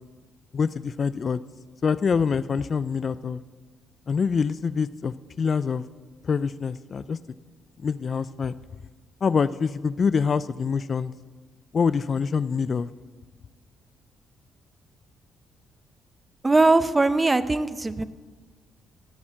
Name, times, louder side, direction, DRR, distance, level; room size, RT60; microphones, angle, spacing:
voice 1, 0.5-1.4 1.8-3.4 4.1-5.9 6.2-7.2 7.8-8.5 9.2-11.1 11.7-12.9, left 5 dB, 45° left, 17 dB, 0.4 m, -25 dB
voice 2, 16.4-18.1, right 3 dB, 20° right, 14 dB, 0.6 m, -20 dB
14.5 x 7.2 x 7.5 m, 1.4 s
cardioid pair, 90°, 0 cm